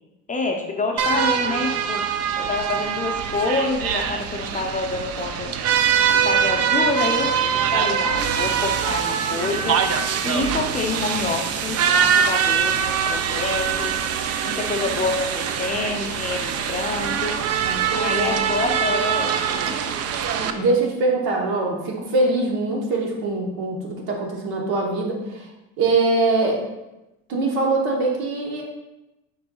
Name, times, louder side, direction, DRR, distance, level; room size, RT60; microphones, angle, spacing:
voice 1, 0.3-2.0 2.4-5.5 6.1-7.4 7.7-14.0 14.4-17.4 17.9-19.9, left 3 dB, 20° left, 2 dB, 0.5 m, -27 dB
sound 1, 1.0-20.5, right 7 dB, 45° right, 0.4 m, -23 dB
voice 2, 17.6-18.4 20.3-25.5 25.8-26.6 27.3-28.6, right 3 dB, 75° right, 0 dB, 1.1 m, -23 dB
5.2 x 4.2 x 2.3 m, 0.97 s
supercardioid pair, 95°, 37 cm